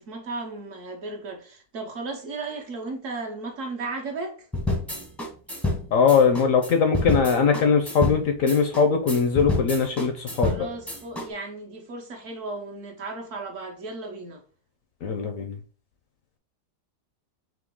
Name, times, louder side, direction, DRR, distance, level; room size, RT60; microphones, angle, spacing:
voice 1, 0.0-4.5 10.4-14.4, right 3 dB, 60° right, 1.0 m, -35 dB
sound 1, 4.5-11.3, left 2 dB, ahead, 0.4 m, -29 dB
voice 2, 5.9-10.7 15.0-15.6, left 5 dB, 70° left, 0.8 m, -21 dB
3.8 x 2.9 x 3.6 m
omnidirectional pair, 1.8 m